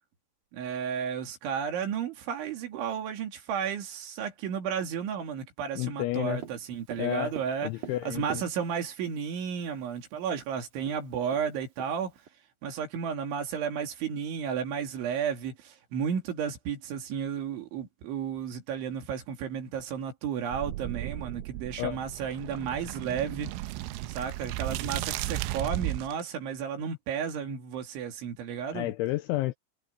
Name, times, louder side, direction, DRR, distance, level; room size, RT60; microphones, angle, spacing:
voice 1, 0.5-7.7 8.0-12.1 12.6-23.5 24.1-28.9, right 7 dB, 65° right, 4.9 m, -33 dB
voice 2, 5.8-6.4 7.0-7.3 7.6-8.4 21.8-22.0 28.7-29.5, left 17 dB, 80° left, 2.8 m, -30 dB
Tap, 6.4-9.0 10.0-10.1 10.4-10.5 10.8-12.3, right 9 dB, 50° right, 3.0 m, -44 dB
sound 1, 20.5-26.2, right 16 dB, 85° right, 3.0 m, -35 dB
omnidirectional pair, 6.0 m